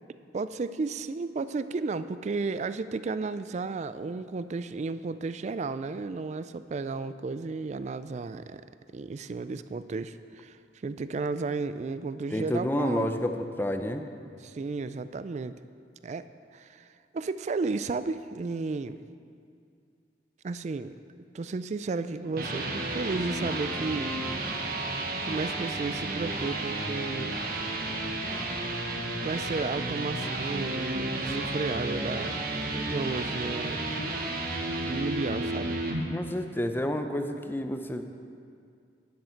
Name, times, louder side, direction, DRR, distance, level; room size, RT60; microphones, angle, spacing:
voice 1, 0.3-8.6 8.9-13.1 14.4-15.6 16.0-16.2 16.5-16.9 17.1-19.0 20.4-20.9 21.3-24.1 25.2-27.4 29.2-32.4 32.7-33.8 34.8-35.8, right 3 dB, 40° right, 13 dB, 0.3 m, -33 dB
voice 2, 12.3-14.0 28.5-28.6 36.1-38.0, left 1 dB, 10° left, 7 dB, 0.5 m, -30 dB
sound 1, 22.1-36.0, right 2 dB, 55° right, 1.2 m, -32 dB
12.0 x 10.5 x 4.5 m, 2.3 s
head